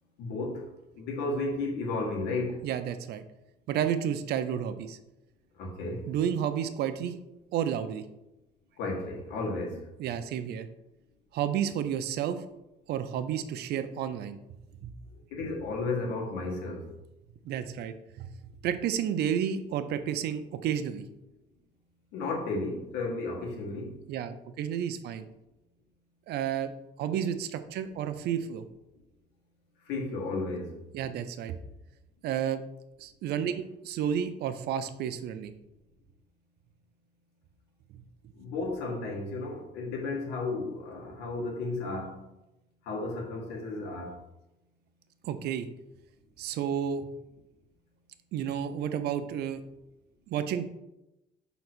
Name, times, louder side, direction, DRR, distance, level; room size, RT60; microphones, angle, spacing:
voice 1, 0.2-0.7 1.0-2.6 5.6-6.1 8.8-9.8 15.3-16.9 22.1-24.0 29.9-30.8 38.3-42.2 42.8-44.2, left 3 dB, 90° left, 1.9 m, -33 dB
voice 2, 2.6-3.2 3.7-5.0 6.1-7.1 7.5-8.0 10.0-10.7 11.3-12.4 12.9-14.4 14.8-14.9 17.4-18.3 18.6-21.0 24.1-25.2 26.3-26.7 27.0-28.6 30.9-31.6 32.2-32.6 33.0-35.5 45.2-45.7 46.4-47.1 48.3-49.6 50.3-50.7, right 9 dB, 75° right, 0.7 m, -31 dB
5.7 x 4.1 x 6.2 m
cardioid pair, 110°, 17 cm